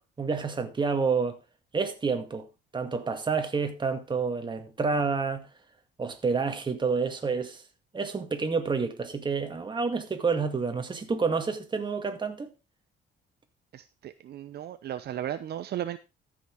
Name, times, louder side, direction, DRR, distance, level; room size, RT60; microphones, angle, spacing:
voice 1, 0.2-1.4 1.7-2.5 2.7-5.5 6.0-7.6 7.9-12.5, right 5 dB, 25° right, 2.0 m, -29 dB
voice 2, 13.7-16.0, right 11 dB, 60° right, 0.8 m, -35 dB
14.0 x 6.2 x 4.6 m
cardioid pair, 120°, 19 cm